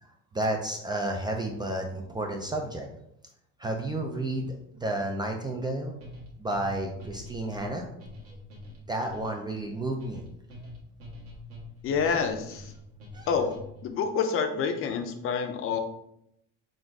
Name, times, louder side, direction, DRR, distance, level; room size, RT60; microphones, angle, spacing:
voice 1, 0.0-2.9 3.6-5.9 6.4-7.9 8.9-10.2 13.1-13.3, right 1 dB, 15° right, 2 dB, 0.3 m, -31 dB
sound 1, 6.0-13.9, left 1 dB, 50° right, 1.4 m, -45 dB
voice 2, 11.8-12.7 13.3-13.5 13.8-15.8, left 6 dB, 45° left, 6 dB, 0.6 m, -28 dB
4.1 x 2.5 x 4.5 m, 0.79 s
cardioid pair, 145°, 30 cm